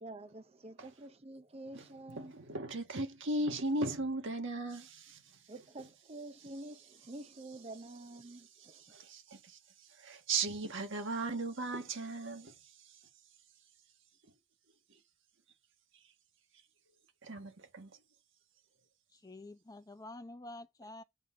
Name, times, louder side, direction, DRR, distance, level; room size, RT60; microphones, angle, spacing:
voice 1, 0.0-2.3 5.5-8.8, right 2 dB, 30° right, 0.7 m, -48 dB
voice 2, 1.7-5.2 8.2-13.0 17.2-17.9, right 2 dB, 65° right, 1.5 m, -38 dB
voice 3, 19.1-21.0, left 2 dB, 20° left, 0.8 m, -48 dB
8.1 x 4.0 x 5.0 m
head